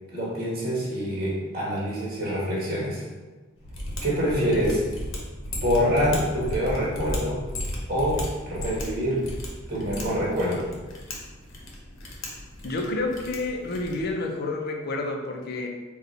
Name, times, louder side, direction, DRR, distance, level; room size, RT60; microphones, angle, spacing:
voice 1, 0.1-3.0 4.0-4.8 5.6-7.4 7.9-9.2 9.7-10.7, equal, 50° right, -5 dB, 1.4 m, -26 dB
Mechanisms, 3.6-14.1, left 1 dB, 75° left, 0.9 m, -35 dB
voice 2, 12.6-15.7, left 2 dB, 50° left, 2 dB, 0.5 m, -29 dB
4.0 x 2.3 x 4.1 m, 1.2 s
head